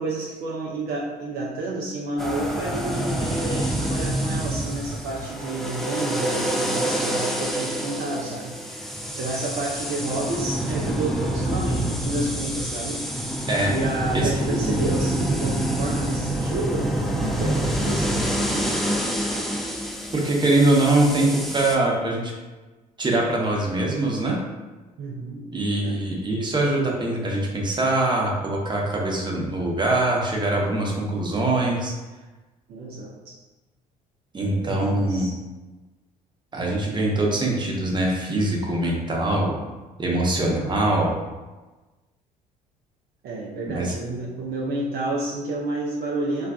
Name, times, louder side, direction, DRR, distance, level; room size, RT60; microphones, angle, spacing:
voice 1, 0.0-13.0 13.7-18.7 25.0-25.5 25.8-26.0 32.7-33.4 34.5-35.3 43.2-46.5, right 2 dB, 55° right, -3 dB, 0.5 m, -30 dB
sound 1, 2.2-21.8, right 1 dB, ahead, 0.4 m, -27 dB
voice 2, 14.1-14.9 20.1-22.3 23.0-24.4 25.5-31.9 34.3-35.3 36.5-39.5 40.0-41.1 43.7-43.9, right 2 dB, 20° right, -2 dB, 0.8 m, -23 dB
3.3 x 2.3 x 2.3 m, 1.2 s
hypercardioid pair, 55°, 20 cm